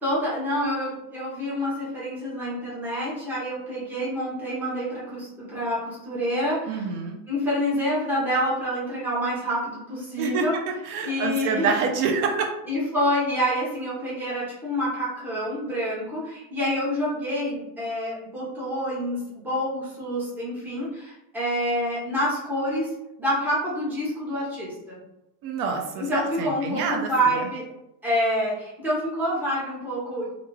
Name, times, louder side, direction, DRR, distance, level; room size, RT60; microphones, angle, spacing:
voice 1, 0.0-6.9 7.3-10.6 11.0-11.8 12.7-22.9 23.2-25.0 25.9-27.7 28.0-30.3, equal, 5° right, -8 dB, 0.6 m, -27 dB
voice 2, 6.7-7.2 10.2-10.4 10.9-12.5 25.4-27.1, right 5 dB, 65° right, 3 dB, 0.6 m, -27 dB
2.4 x 2.3 x 3.0 m, 0.88 s
cardioid pair, 160°, 49 cm